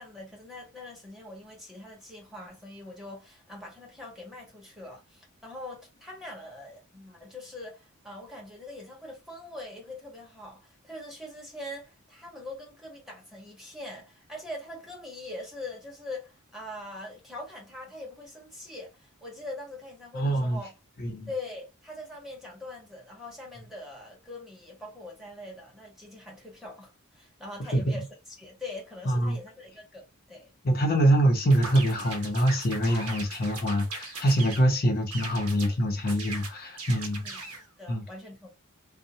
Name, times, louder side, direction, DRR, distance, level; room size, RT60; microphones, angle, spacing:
voice 1, 0.0-20.7 21.3-28.1 28.4-30.5 37.1-38.5, left 2 dB, ahead, 1.0 m, -42 dB
voice 2, 20.1-20.6 21.0-21.3 27.7-27.8 29.1-29.4 30.6-37.2 37.9-38.0, right 1 dB, 45° left, 0.6 m, -24 dB
sound 1, 31.5-34.7 35.1-35.7 36.1-37.6, right 3 dB, 85° right, 0.7 m, -39 dB
2.7 x 2.0 x 2.6 m
head